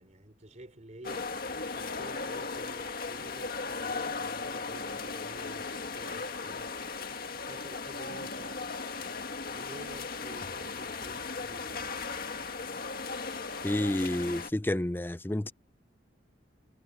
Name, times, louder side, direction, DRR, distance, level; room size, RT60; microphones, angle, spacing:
voice 1, 0.0-1.4 1.7-6.8 7.5-8.7 9.2-12.0, right 1 dB, 40° right, 4.3 m, -50 dB
sound 1, 1.0-14.5, left 4 dB, 50° left, 1.8 m, -37 dB
voice 2, 13.6-15.5, left 1 dB, 10° left, 0.4 m, -30 dB
head